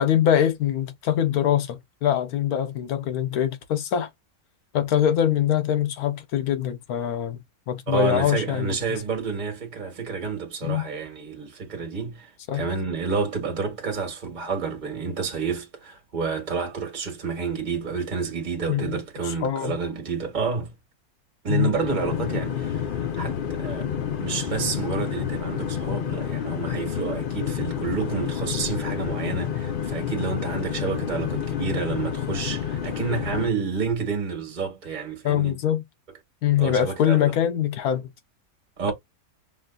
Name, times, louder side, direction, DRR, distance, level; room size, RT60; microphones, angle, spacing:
voice 1, 0.0-4.1 4.7-7.4 7.7-8.8 10.6-10.9 12.5-12.7 18.7-18.9 19.4-19.7 21.5-21.7 35.2-35.8 36.4-38.0, left 10 dB, 90° left, 1.3 m, -23 dB
voice 2, 7.9-20.7 21.4-23.9 24.2-35.6 36.6-37.2 38.8-38.9, right 5 dB, 35° right, 1.3 m, -29 dB
sound 1, 21.8-33.5, left 8 dB, 50° left, 0.7 m, -29 dB
5.8 x 2.6 x 2.3 m
omnidirectional pair, 1.5 m